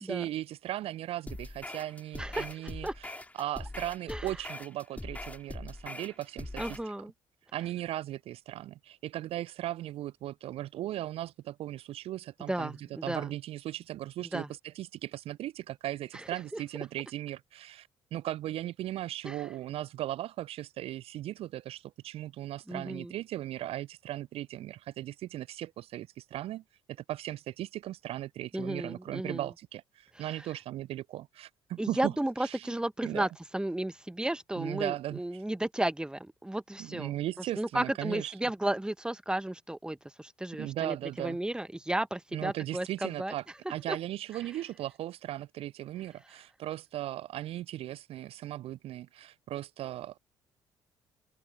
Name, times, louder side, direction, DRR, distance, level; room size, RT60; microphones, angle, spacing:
voice 1, 0.0-6.8 7.5-26.6 27.1-32.1 32.4-32.8 33.0-33.3 34.6-35.4 36.8-38.4 40.6-41.4 42.3-50.2, right 14 dB, 50° right, 0.6 m, -37 dB
sound 1, 1.3-6.9, left 2 dB, 10° left, 4.1 m, -42 dB
voice 2, 6.6-7.1 12.5-13.3 14.3-14.5 16.5-16.6 19.2-19.3 22.7-23.1 28.5-29.5 30.2-30.3 31.8-37.1 37.6-43.3 43.9-44.0, right 1 dB, 5° right, 1.5 m, -33 dB
open air
figure-of-eight pair, 45°, 12 cm